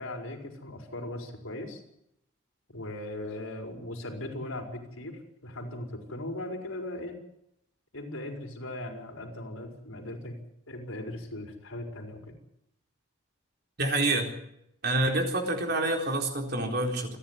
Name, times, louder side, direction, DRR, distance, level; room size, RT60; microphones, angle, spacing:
voice 1, 0.0-1.8 2.7-7.2 7.9-10.4 10.7-12.4, left 1 dB, 90° left, 2 dB, 4.9 m, -38 dB
voice 2, 13.8-14.3 14.8-17.2, right 2 dB, 50° right, 2 dB, 4.1 m, -27 dB
28.0 x 11.0 x 9.7 m, 0.80 s
head